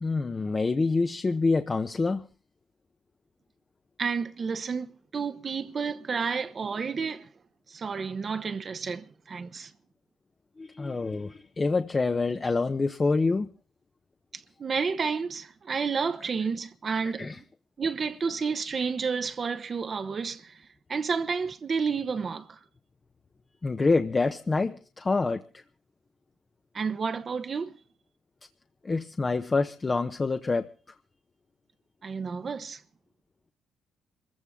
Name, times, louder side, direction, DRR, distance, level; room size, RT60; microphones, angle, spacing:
voice 1, 0.0-2.2 10.6-13.5 17.2-17.4 23.6-25.6 28.8-30.7, left 3 dB, 30° left, 0.9 m, -26 dB
voice 2, 4.0-7.3 7.7-9.7 14.3-17.3 17.8-22.6 26.7-27.8 32.0-32.8, right 5 dB, 40° right, 1.0 m, -31 dB
24.0 x 15.0 x 3.7 m
cardioid pair, 90°, 0 cm